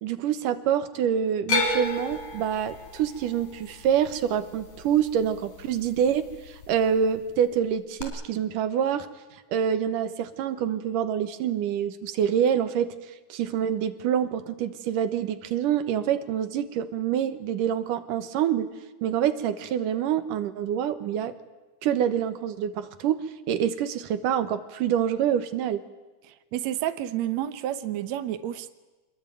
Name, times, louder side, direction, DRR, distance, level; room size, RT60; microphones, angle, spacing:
voice 1, 0.0-9.1 9.5-12.9 13.3-18.7 19.0-21.3 21.8-25.8, right 9 dB, 85° right, 11 dB, 2.8 m, -26 dB
sound 1, 1.5-5.7 6.0-6.7 8.0-8.1, left 2 dB, 75° left, 5.1 m, -31 dB
voice 2, 26.3-28.7, right 12 dB, 65° right, 10 dB, 2.1 m, -30 dB
26.0 x 21.5 x 9.1 m, 1.2 s
omnidirectional pair, 3.7 m